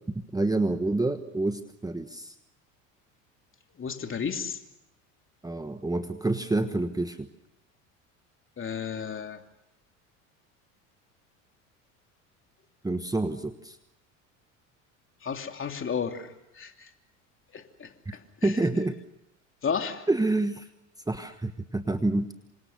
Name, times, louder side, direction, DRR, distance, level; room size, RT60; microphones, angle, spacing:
voice 1, 0.3-2.3 5.4-7.3 12.8-13.8 18.1-19.0 20.1-20.7 21.1-22.3, right 2 dB, 10° right, 9 dB, 1.2 m, -28 dB
voice 2, 3.8-4.6 8.6-9.4 15.2-16.9 17.5-18.6 19.6-20.1, left 6 dB, 30° left, 5 dB, 2.9 m, -33 dB
28.0 x 25.5 x 6.7 m, 0.83 s
hypercardioid pair, 75°, 40 cm